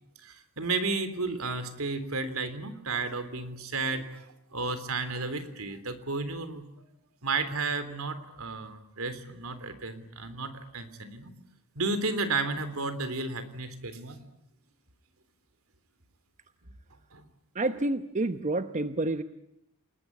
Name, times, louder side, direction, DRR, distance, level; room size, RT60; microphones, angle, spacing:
voice 1, 0.2-6.6 7.2-11.3 11.8-14.2 17.1-17.3, right 3 dB, 70° right, 11 dB, 3.5 m, -33 dB
voice 2, 17.5-19.2, right 2 dB, 35° right, 10 dB, 1.0 m, -29 dB
29.5 x 20.5 x 9.8 m, 0.81 s
head